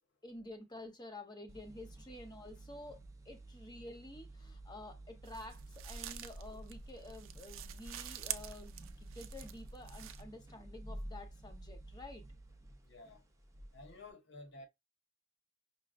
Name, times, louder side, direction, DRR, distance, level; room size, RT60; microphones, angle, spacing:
voice 1, 0.2-3.0 3.2-12.2, left 1 dB, 20° left, 0.9 m, -50 dB
sound 1, 1.5-14.1, right 1 dB, 15° right, 0.5 m, -52 dB
sound 2, 5.2-10.2, right 9 dB, 70° right, 0.5 m, -46 dB
voice 2, 12.8-13.2 13.7-14.6, left 2 dB, 60° left, 1.2 m, -52 dB
5.8 x 2.1 x 2.5 m
head